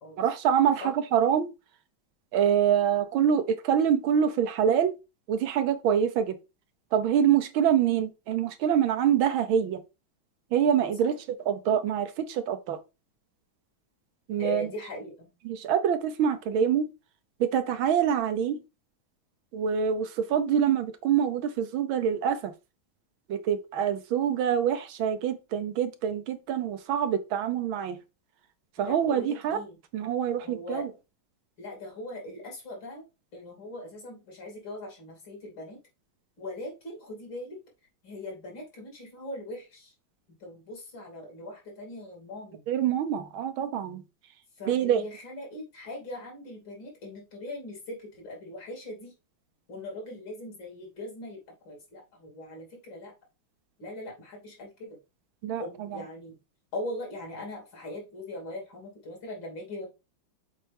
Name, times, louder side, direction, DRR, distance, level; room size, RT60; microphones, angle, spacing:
voice 1, 0.2-1.5 2.3-4.9 5.3-6.4 6.9-9.8 10.5-11.1 11.5-12.8 14.3-14.7 15.4-16.9 17.4-18.6 19.5-22.5 23.3-28.0 28.8-29.6 29.9-30.9 42.7-44.0 44.7-45.0 55.4-55.6, right 8 dB, 80° right, 1.5 m, -25 dB
voice 2, 14.4-15.3 28.8-29.8 30.4-30.9 31.6-33.0 33.3-35.8 36.4-37.6 38.0-39.9 40.4-42.6 44.6-49.1 49.7-51.4 51.7-53.1 53.8-55.0 55.6-56.4 56.7-59.9, left 1 dB, 65° left, 3.7 m, -40 dB
7.5 x 4.3 x 3.4 m
omnidirectional pair, 2.2 m